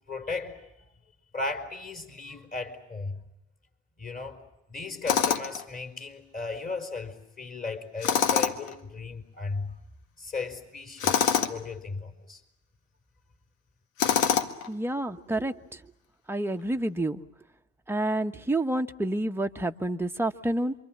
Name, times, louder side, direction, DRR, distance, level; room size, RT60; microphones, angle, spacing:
voice 1, 0.1-0.7 1.3-3.2 4.0-4.4 4.7-9.7 10.2-12.4, left 3 dB, 20° left, 4.4 m, -36 dB
Tools, 5.1-5.6 8.0-8.7 11.0-11.6 14.0-14.7, left 8 dB, 80° left, 1.7 m, -24 dB
voice 2, 14.7-15.6 16.3-17.2 17.9-20.7, right 1 dB, 5° right, 1.3 m, -28 dB
27.5 x 25.0 x 7.5 m
hypercardioid pair, 80°, 39 cm